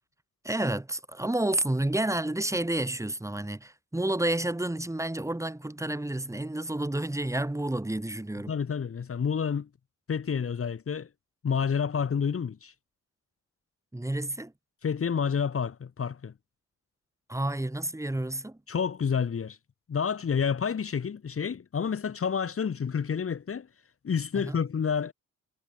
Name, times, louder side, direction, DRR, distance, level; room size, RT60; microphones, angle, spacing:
voice 1, 0.4-8.5 13.9-14.5 17.3-18.6 24.3-24.6, right 1 dB, 10° right, 6.0 m, -30 dB
voice 2, 8.5-9.7 10.1-11.1 11.4-12.7 14.8-16.3 18.7-19.6 19.9-23.7 24.0-25.1, left 6 dB, 45° left, 2.6 m, -29 dB
wide cardioid pair, 135°, 31 cm